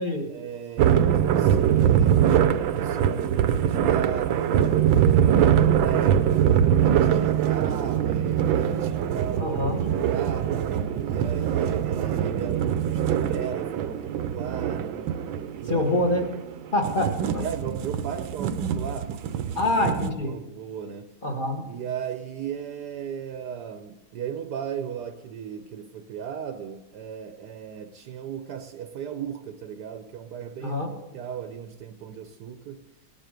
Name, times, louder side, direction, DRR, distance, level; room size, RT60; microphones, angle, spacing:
voice 1, 0.3-9.6 9.9-10.7 11.0-15.1 15.5-16.0 17.2-21.1 21.7-30.9 31.1-32.8, right 8 dB, 65° right, 1.2 m, -36 dB
sound 1, 0.8-20.1, right 9 dB, 90° right, 1.5 m, -23 dB
voice 2, 9.4-9.8 15.7-16.3 16.7-17.4 19.5-20.4 21.2-21.7 30.6-30.9, left 1 dB, 25° left, 1.7 m, -25 dB
19.0 x 9.8 x 5.1 m
omnidirectional pair, 2.1 m